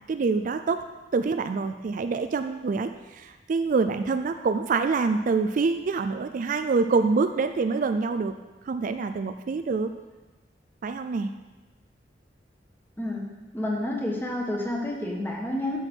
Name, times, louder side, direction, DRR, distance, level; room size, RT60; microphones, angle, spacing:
voice 1, 0.1-0.8 1.1-8.3 8.6-9.9 10.8-11.3, right 4 dB, 45° right, 9 dB, 0.4 m, -26 dB
voice 2, 13.0-15.8, left 1 dB, 10° left, -1 dB, 1.5 m, -30 dB
11.5 x 6.3 x 4.5 m, 1.2 s
head